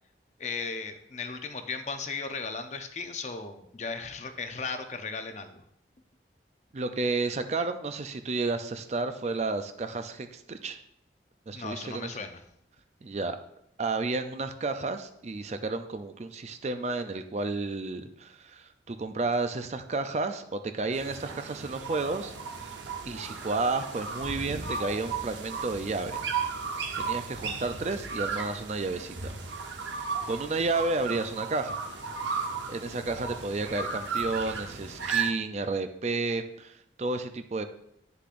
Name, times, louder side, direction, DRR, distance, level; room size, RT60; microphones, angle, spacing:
voice 1, 0.4-5.6 11.5-12.4 26.9-27.2, left 4 dB, 40° left, 7 dB, 0.6 m, -36 dB
voice 2, 6.7-10.8 11.5-12.2 13.0-13.4 13.8-22.3 22.6-26.2 26.7-29.3 29.8-31.8 32.7-37.7, right 3 dB, 40° right, 9 dB, 0.4 m, -32 dB
sound 1, 20.9-35.3, right 5 dB, 90° right, 0.9 m, -35 dB
9.5 x 6.8 x 2.5 m, 0.74 s
head